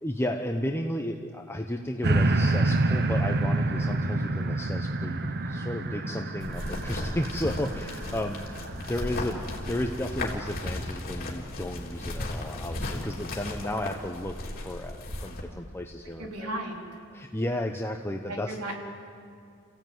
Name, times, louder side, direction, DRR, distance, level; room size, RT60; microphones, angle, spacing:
voice 1, 0.0-8.4 8.8-9.4 9.7-16.5 17.1-18.6, left 1 dB, 10° left, 3 dB, 0.9 m, -33 dB
sound 1, 2.0-9.4 10.0-10.1, right 2 dB, 50° right, 1.1 m, -28 dB
sound 2, 6.4-15.4, left 1 dB, 45° left, 3.5 m, -35 dB
voice 2, 16.2-16.9 18.3-18.8, right 1 dB, 90° right, 1 dB, 3.8 m, -35 dB
28.0 x 16.0 x 9.5 m, 2.5 s
head